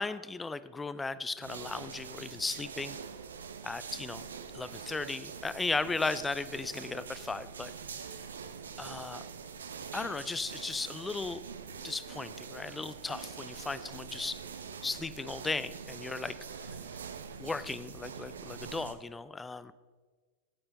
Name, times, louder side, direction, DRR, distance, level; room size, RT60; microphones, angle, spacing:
voice 1, 0.0-3.0 3.6-4.3 4.5-7.7 8.8-9.2 9.9-11.4 11.8-14.4 14.8-16.8 17.4-19.7, left 3 dB, 10° left, 15 dB, 0.5 m, -36 dB
sound 1, 1.4-18.9, right 6 dB, 70° right, 0.8 m, -44 dB
17.5 x 8.9 x 4.1 m, 1.4 s
figure-of-eight pair, 90°, 0 cm